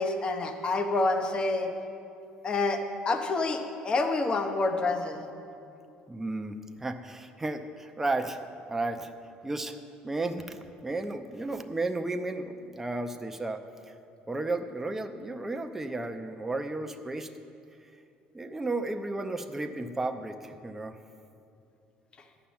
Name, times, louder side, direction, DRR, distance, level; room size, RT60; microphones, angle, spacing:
voice 1, 0.0-1.7 2.4-5.2, left 3 dB, 35° left, 6 dB, 0.9 m, -28 dB
voice 2, 6.1-8.4 8.7-9.1 9.4-9.8 10.0-13.9 14.3-17.3 18.3-21.0, right 2 dB, 10° right, 6 dB, 0.6 m, -33 dB
11.5 x 5.8 x 8.7 m, 2.6 s
cardioid pair, 110°, 3 cm